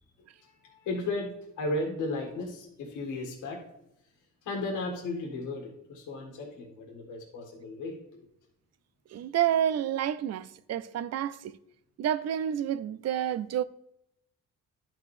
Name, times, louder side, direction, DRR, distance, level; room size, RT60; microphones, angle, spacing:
voice 1, 0.4-3.6 4.4-8.0, left 2 dB, 85° left, 1.7 m, -35 dB
voice 2, 9.1-11.5 12.0-13.6, right 10 dB, 60° right, 0.5 m, -29 dB
11.5 x 4.8 x 3.2 m
cardioid pair, 90°, 30 cm